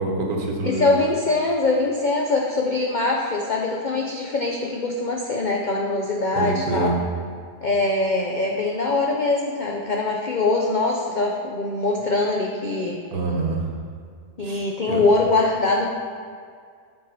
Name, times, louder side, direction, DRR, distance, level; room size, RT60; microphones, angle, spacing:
voice 1, 0.0-0.9 6.3-6.9 13.1-13.7 14.4-15.0, right 3 dB, 70° right, 0 dB, 1.5 m, -26 dB
voice 2, 0.6-6.9 7.6-13.0 14.4-15.8, left 3 dB, 85° left, -1 dB, 0.4 m, -23 dB
8.2 x 4.5 x 4.2 m, 2.1 s
omnidirectional pair, 1.6 m